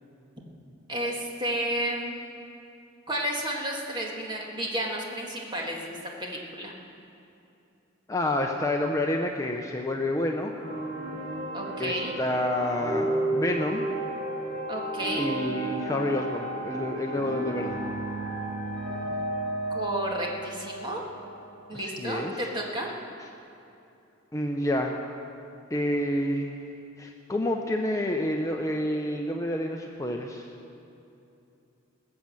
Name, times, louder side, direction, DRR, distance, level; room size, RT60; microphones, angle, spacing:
voice 1, 0.9-2.2 3.1-6.7 11.5-12.2 14.7-15.4 19.7-21.0 21.7-22.9, right 1 dB, 25° right, -1 dB, 2.0 m, -32 dB
voice 2, 8.1-10.5 11.8-13.9 15.2-17.8 21.7-22.3 24.3-25.0 25.7-26.6 27.0-30.5, left 1 dB, 15° left, 2 dB, 0.7 m, -29 dB
sound 1, 10.6-21.8, right 1 dB, 65° right, 3.8 m, -33 dB
20.0 x 7.5 x 7.5 m, 2.8 s
head